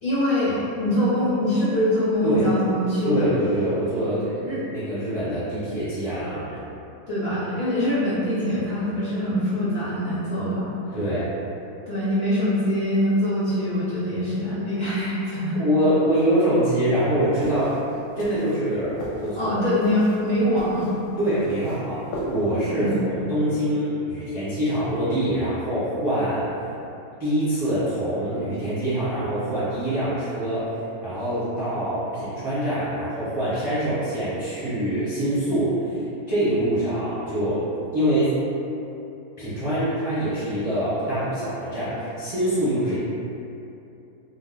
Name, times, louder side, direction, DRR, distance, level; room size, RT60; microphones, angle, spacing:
voice 1, 0.0-3.3 3.9-4.6 6.5-6.6 7.1-10.7 11.9-15.6 19.4-20.9 22.7-22.9, left 1 dB, 50° left, -12 dB, 0.8 m, -24 dB
voice 2, 3.1-4.4 4.7-6.4 10.9-11.3 15.6-17.8 18.2-18.9 19.2-19.6 21.2-26.5 27.2-30.7 31.0-38.4 39.4-42.9, right 1 dB, 25° right, -13 dB, 0.5 m, -24 dB
sound 1, 17.3-22.7, equal, 70° left, 1.0 m, -38 dB
2.6 x 2.0 x 3.7 m, 2.8 s
omnidirectional pair, 1.7 m